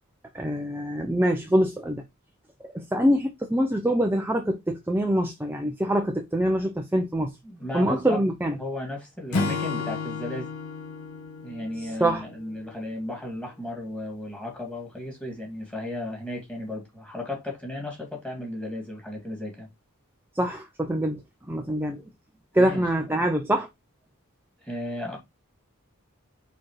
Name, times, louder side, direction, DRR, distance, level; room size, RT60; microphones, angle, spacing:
voice 1, 0.3-2.0 2.6-7.3 7.7-8.6 12.0-12.2 20.4-21.2 21.5-22.0 22.5-23.7, equal, 10° right, 0.8 m, -24 dB
voice 2, 7.4-8.2 8.6-10.5 11.4-19.7 22.6-22.8 23.1-23.2 24.6-25.2, left 1 dB, 5° left, 2.7 m, -35 dB
Acoustic guitar / Strum, 9.3-12.8, left 4 dB, 75° left, 1.4 m, -32 dB
4.9 x 4.5 x 4.8 m
head